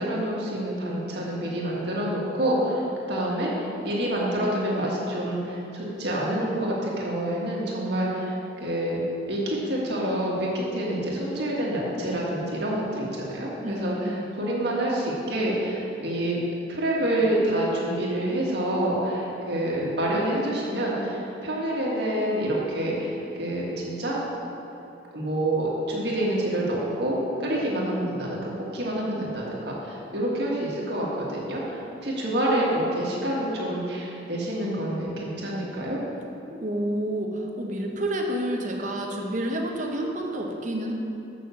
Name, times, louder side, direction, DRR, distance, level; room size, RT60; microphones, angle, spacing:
voice 1, 0.0-2.8 3.1-3.5 3.8-9.0 9.3-16.4 16.7-24.2 25.1-36.0, right 1 dB, 65° right, -4 dB, 1.7 m, -27 dB
voice 2, 13.6-14.3 36.5-40.9, right 1 dB, 40° right, 1 dB, 0.9 m, -29 dB
6.6 x 5.9 x 6.9 m, 3.0 s
head